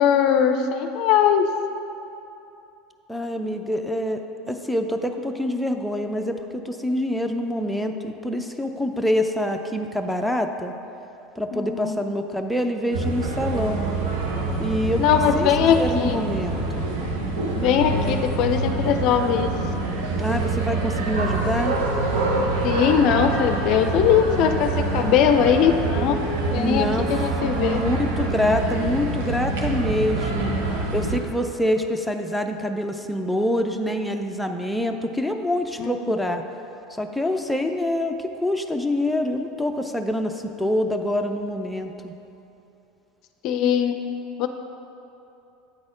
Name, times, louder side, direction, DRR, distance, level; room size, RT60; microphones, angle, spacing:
voice 1, 0.0-1.5 11.5-12.0 15.0-16.2 17.5-19.5 22.6-27.8 35.8-36.2 43.4-44.0 44.4-44.5, left 8 dB, 55° left, 7 dB, 0.4 m, -20 dB
voice 2, 3.1-4.2 4.5-10.7 11.4-13.8 14.6-16.8 20.2-21.8 26.5-27.1 27.6-30.5 30.9-36.4 37.0-42.1, left 1 dB, ahead, 4 dB, 0.5 m, -26 dB
sound 1, 12.9-31.2, right 3 dB, 75° right, 0.9 m, -26 dB
8.6 x 4.1 x 4.9 m, 2.9 s
hypercardioid pair, 80°, 0 cm